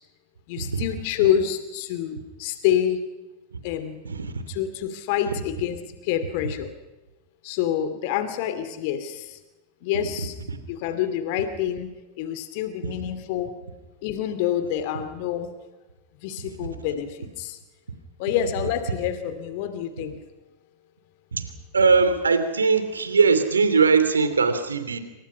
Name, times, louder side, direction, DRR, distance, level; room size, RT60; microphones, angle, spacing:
voice 1, 0.5-3.0 3.6-4.0 4.5-5.8 6.0-6.7 7.4-9.4 9.8-10.3 10.7-13.5 14.0-15.5 16.2-17.6 18.2-20.2, left 10 dB, 50° left, 10 dB, 2.5 m, -27 dB
voice 2, 21.7-25.0, right 4 dB, 75° right, 10 dB, 3.0 m, -20 dB
28.0 x 25.5 x 5.7 m, 1.1 s
figure-of-eight pair, 90°, 0 cm